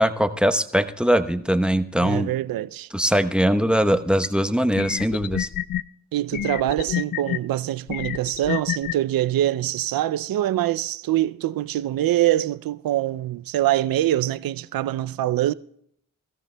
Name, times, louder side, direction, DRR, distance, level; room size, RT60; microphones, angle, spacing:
voice 1, 0.0-2.3 2.9-5.5, equal, 5° right, 0.9 m, -21 dB
voice 2, 2.0-2.9 6.1-15.5, right 13 dB, 75° right, 0.5 m, -24 dB
sound 1, 4.2-4.3 4.8-5.8 6.3-7.4 7.9-8.9, left 11 dB, 70° left, 0.5 m, -27 dB
22.5 x 13.5 x 2.2 m
supercardioid pair, 45°, 35 cm